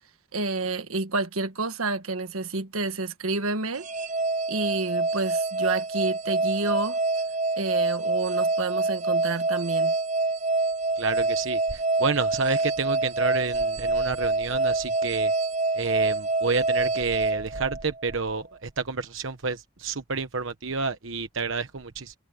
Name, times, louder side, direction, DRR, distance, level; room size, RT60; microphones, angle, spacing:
voice 1, 0.3-3.9 4.5-7.0 7.6-9.9, right 3 dB, 85° right, 1.5 m, -29 dB
sound 1, 3.8-18.1, right 3 dB, 35° right, 1.1 m, -26 dB
voice 2, 11.0-15.3 15.7-22.1, right 4 dB, 70° right, 1.1 m, -29 dB
head